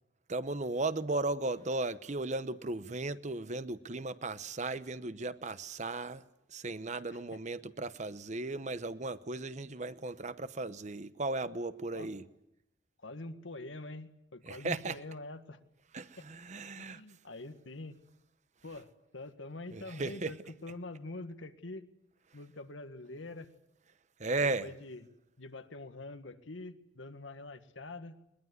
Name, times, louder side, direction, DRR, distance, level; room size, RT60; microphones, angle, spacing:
voice 1, 0.3-6.2 6.5-12.2 14.4-15.0 15.9-17.0 19.7-20.3 24.2-24.7, right 2 dB, 40° right, 0.9 m, -36 dB
voice 2, 7.1-7.4 11.9-12.1 13.0-15.6 16.8-18.0 18.6-21.9 22.3-23.5 24.4-25.0 25.4-28.2, left 2 dB, 90° left, 1.7 m, -45 dB
21.5 x 21.0 x 9.6 m
head